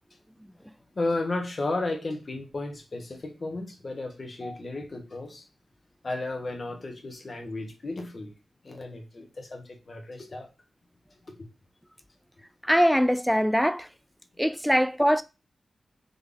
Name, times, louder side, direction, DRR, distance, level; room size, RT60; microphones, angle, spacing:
voice 1, 0.9-5.4 6.0-8.3 8.6-10.5, left 2 dB, 50° left, 1.5 m, -33 dB
voice 2, 12.6-13.9 14.4-15.2, equal, ahead, 0.5 m, -22 dB
4.1 x 3.4 x 3.5 m
cardioid pair, 55°, 0 cm